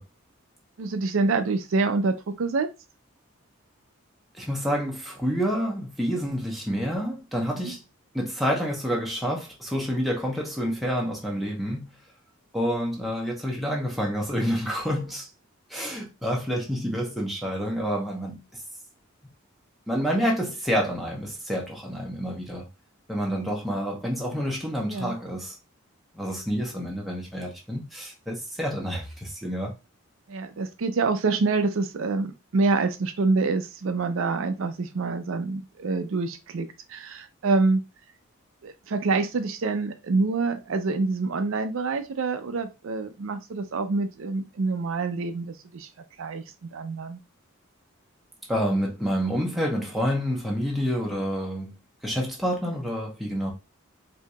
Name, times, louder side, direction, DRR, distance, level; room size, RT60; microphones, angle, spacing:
voice 1, 0.8-2.7 7.6-7.8 24.9-25.2 30.3-37.8 38.6-45.9 46.2-47.2, right 3 dB, 65° right, 0.4 m, -26 dB
voice 2, 4.3-7.8 8.1-12.0 12.5-15.3 15.7-18.4 19.9-22.7 23.1-25.6 26.1-29.7 48.5-51.8 52.0-53.5, equal, ahead, 0.8 m, -28 dB
4.6 x 2.7 x 2.3 m
head